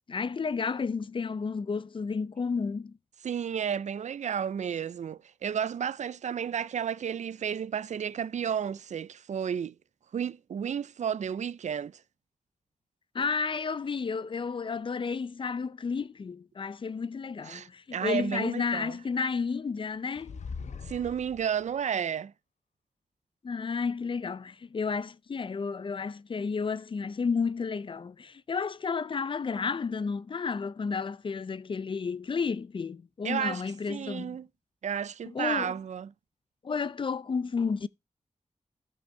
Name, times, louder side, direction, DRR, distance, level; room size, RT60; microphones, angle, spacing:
voice 1, 0.1-3.0 13.1-20.4 23.4-34.4 35.2-35.8 36.6-37.9, left 5 dB, 45° left, 0.5 m, -32 dB
voice 2, 3.2-9.7 10.1-11.9 17.5-18.9 20.9-22.3 33.2-33.6 33.9-34.5 34.8-36.1, right 8 dB, 80° right, 0.4 m, -32 dB
sound 1, 20.2-21.8, left 5 dB, 75° left, 1.0 m, -41 dB
13.0 x 5.5 x 4.4 m
wide cardioid pair, 135°, 12 cm